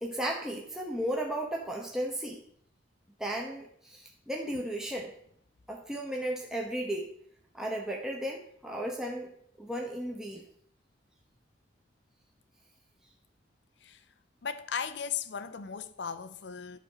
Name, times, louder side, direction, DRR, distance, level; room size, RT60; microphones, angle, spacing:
voice 1, 0.0-2.4 3.2-5.1 5.7-7.1 7.5-9.3 9.6-10.4, right 1 dB, 5° right, 1.0 m, -34 dB
voice 2, 14.4-16.8, left 7 dB, 65° left, 0.6 m, -36 dB
11.0 x 4.3 x 5.7 m
head